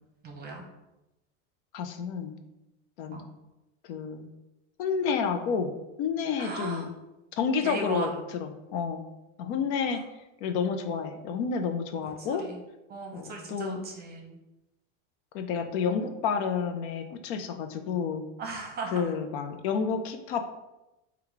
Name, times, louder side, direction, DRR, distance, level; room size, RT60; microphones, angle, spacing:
voice 1, 0.2-0.6 3.1-3.3 6.4-6.9 7.6-8.1 12.2-12.6 12.9-14.4 18.4-19.1, right 3 dB, 25° right, 1 dB, 0.7 m, -37 dB
voice 2, 1.7-2.3 3.0-3.2 3.9-4.3 4.8-5.7 6.0-6.9 7.4-8.1 8.4-9.0 9.4-10.0 10.4-12.4 13.1-13.9 15.3-18.2 18.9-20.5, left 6 dB, 65° left, 7 dB, 0.6 m, -30 dB
3.8 x 2.3 x 4.5 m, 0.97 s
supercardioid pair, 135°, 36 cm